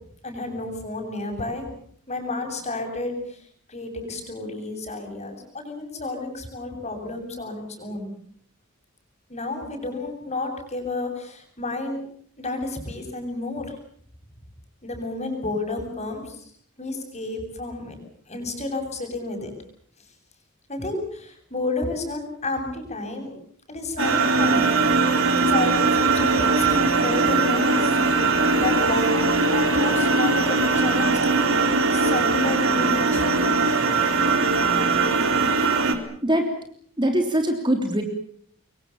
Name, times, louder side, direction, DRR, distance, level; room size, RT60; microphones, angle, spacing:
voice 1, 0.2-1.7 2.1-3.4 3.7-8.1 9.3-12.0 12.4-13.7 14.8-16.4 16.8-18.0 18.3-19.5 20.7-23.3 23.7-24.7 25.3-28.0 28.5-33.5, left 2 dB, 30° left, 4 dB, 7.6 m, -31 dB
sound 1, 24.0-36.0, right 3 dB, 60° right, 3.7 m, -20 dB
voice 2, 37.0-38.0, right 1 dB, 20° right, 5 dB, 3.3 m, -22 dB
27.0 x 23.5 x 7.2 m, 0.62 s
head